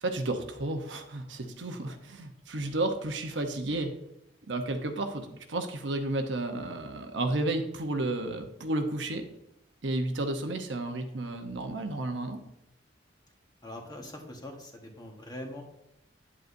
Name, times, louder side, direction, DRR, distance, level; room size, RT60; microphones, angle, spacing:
voice 1, 0.0-3.9 4.5-9.2 9.8-12.4, right 2 dB, 70° right, 5 dB, 0.9 m, -32 dB
voice 2, 13.6-15.6, left 1 dB, 20° left, 2 dB, 1.3 m, -42 dB
9.6 x 7.8 x 2.6 m, 0.83 s
head